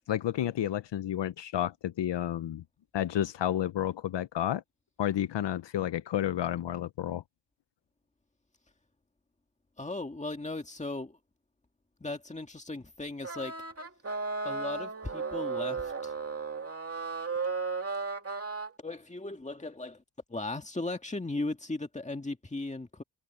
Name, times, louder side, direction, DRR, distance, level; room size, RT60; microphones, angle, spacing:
voice 1, 0.1-2.6 2.9-4.6 5.0-7.2, left 11 dB, 80° left, 0.6 m, -31 dB
voice 2, 9.8-11.2 12.0-13.5 14.4-16.1 18.8-20.0 20.3-23.0, left 2 dB, 15° left, 1.9 m, -37 dB
sound 1, 13.2-18.7, right 4 dB, 35° right, 2.4 m, -35 dB
wide cardioid pair, 145°, 42 cm